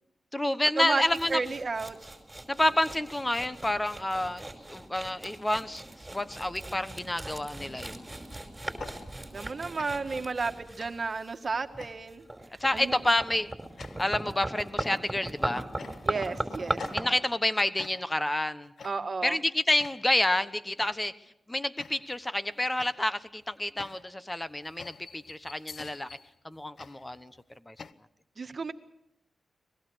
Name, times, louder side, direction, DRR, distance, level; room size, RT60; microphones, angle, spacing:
voice 1, 0.3-1.4 2.5-8.1 12.6-13.5 14.0-15.6 16.9-18.7 19.2-21.2 21.5-26.1 26.4-27.4 27.7-27.8, left 1 dB, 20° left, 13 dB, 1.1 m, -29 dB
sound 1, 1.1-17.0, right 1 dB, 20° right, 5.0 m, -38 dB
voice 2, 1.3-2.0 9.3-12.3 12.7-13.0 16.0-16.9 18.8-19.4 28.4-28.7, right 4 dB, 50° right, 8 dB, 1.7 m, -32 dB
sound 2, 8.8-9.5 9.8-10.2 10.8-11.2 11.8-12.2 12.8-13.1 13.8-14.2 14.8-15.3 15.8-16.3 16.8-17.4 17.8-18.3 18.8-19.2 19.8-20.2 20.8-21.1 21.8-22.3 22.8-27.9, left 5 dB, 65° left, 0.8 m, -48 dB
23.5 x 21.0 x 6.4 m, 0.82 s
cardioid pair, 45°, 0 cm